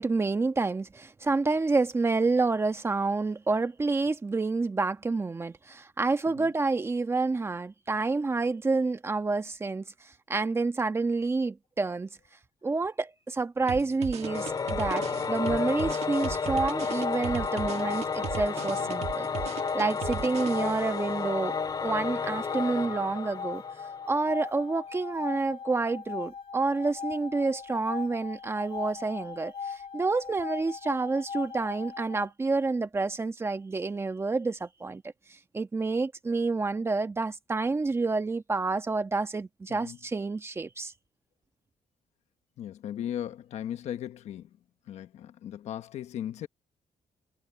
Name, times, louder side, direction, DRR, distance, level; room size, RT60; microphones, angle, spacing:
voice 1, 0.0-12.1 12.6-19.3 19.7-23.6 24.1-35.0 35.5-40.9, right 3 dB, 20° right, 1.3 m, -29 dB
sound 1, 13.7-21.0, right 9 dB, 65° right, 1.6 m, -38 dB
Singing / Musical instrument, 14.2-24.2, left 5 dB, 35° left, 2.4 m, -32 dB
sound 2, 16.5-32.3, left 6 dB, 55° left, 1.6 m, -39 dB
voice 2, 42.6-44.6 44.9-46.5, left 10 dB, 75° left, 1.1 m, -37 dB
cardioid pair, 120°, 11 cm